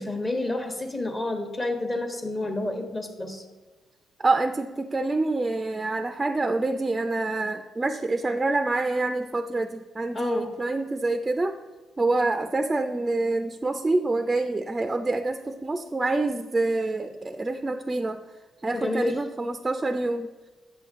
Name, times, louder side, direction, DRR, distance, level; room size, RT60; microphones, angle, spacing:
voice 1, 0.0-3.4 10.1-10.5 18.7-19.2, left 2 dB, 30° left, 4 dB, 1.1 m, -29 dB
voice 2, 4.2-11.6 12.0-18.2 18.6-20.3, right 2 dB, 20° right, 7 dB, 0.4 m, -26 dB
8.1 x 6.2 x 3.6 m, 1.3 s
cardioid pair, 90°, 0 cm